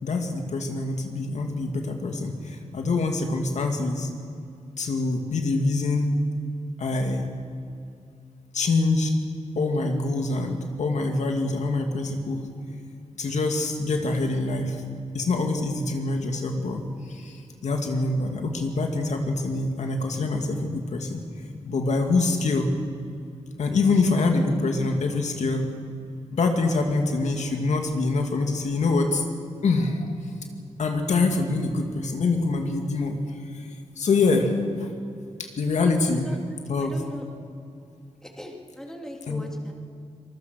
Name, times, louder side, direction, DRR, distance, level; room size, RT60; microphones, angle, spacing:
voice 1, 0.0-4.1 4.8-6.2 6.8-7.3 8.5-9.1 9.6-12.5 13.2-14.8 15.1-16.8 17.1-21.2 21.6-22.7 23.6-25.7 26.3-29.2 29.6-30.1 30.8-33.7 34.0-34.9 35.4-36.3 36.7-37.0 39.3-39.5, left 3 dB, 75° left, 4 dB, 2.5 m, -25 dB
voice 2, 36.2-37.2 38.2-39.7, left 1 dB, 5° left, 1 dB, 2.8 m, -40 dB
25.5 x 21.5 x 6.5 m, 2.5 s
wide cardioid pair, 135°, 12 cm